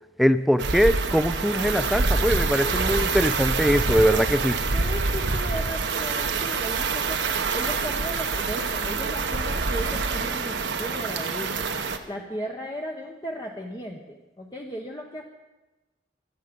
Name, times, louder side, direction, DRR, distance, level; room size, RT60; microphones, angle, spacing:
voice 1, 0.2-4.6, equal, ahead, 12 dB, 0.4 m, -22 dB
sound 1, 0.6-12.0, right 4 dB, 80° right, 1.1 m, -26 dB
voice 2, 4.7-7.2 7.5-11.6 12.1-15.2, equal, 25° left, 0 dB, 1.0 m, -36 dB
17.0 x 12.0 x 5.3 m, 1.1 s
head